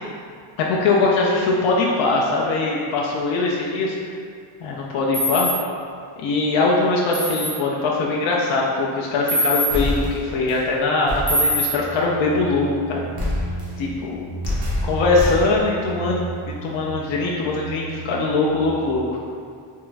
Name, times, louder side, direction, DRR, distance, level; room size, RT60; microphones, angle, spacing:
voice 1, 0.6-3.9 4.6-5.5 6.2-13.1 13.8-14.2 14.8-19.2, left 3 dB, 90° left, -3 dB, 0.6 m, -21 dB
sound 1, 5.1-5.5 7.1-7.5 9.3-9.7 11.3-11.6, left 1 dB, ahead, 0.4 m, -21 dB
sound 2, 9.7-10.6 11.1-11.6 13.2-13.9 14.4-15.7, left 1 dB, 55° right, 1.1 m, -26 dB
sound 3, 11.0-18.6, right 3 dB, 80° right, 1.1 m, -34 dB
3.6 x 3.0 x 3.3 m, 2.3 s
wide cardioid pair, 165°, 46 cm